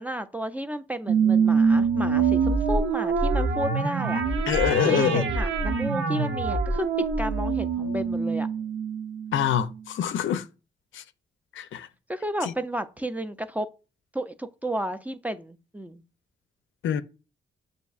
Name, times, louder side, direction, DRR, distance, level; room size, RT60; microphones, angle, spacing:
voice 1, 0.0-4.2 4.7-6.9 7.2-8.5 12.1-13.7 14.1-16.0, equal, 10° right, 0.4 m, -32 dB
sound 1, 1.1-9.8, right 5 dB, 80° right, 0.7 m, -25 dB
voice 2, 4.5-5.2 9.3-10.4 10.9-11.0 11.6-11.9 12.4-12.5 16.8-17.0, left 9 dB, 75° left, 0.4 m, -25 dB
6.6 x 2.6 x 2.4 m
cardioid pair, 70°, 20 cm